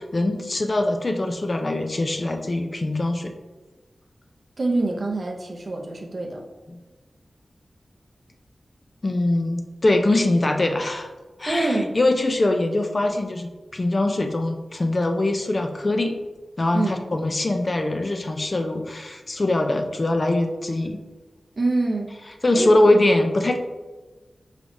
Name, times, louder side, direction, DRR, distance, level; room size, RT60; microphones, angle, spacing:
voice 1, 0.0-3.3 9.0-11.1 11.4-16.1 16.6-21.0 22.4-23.6, left 2 dB, 35° left, 5 dB, 0.3 m, -22 dB
voice 2, 4.6-6.4 11.5-12.0 16.7-17.0 21.6-22.2 22.5-22.7, right 2 dB, 45° right, 0 dB, 0.5 m, -25 dB
4.9 x 3.1 x 2.6 m, 1.2 s
wide cardioid pair, 115°, 0 cm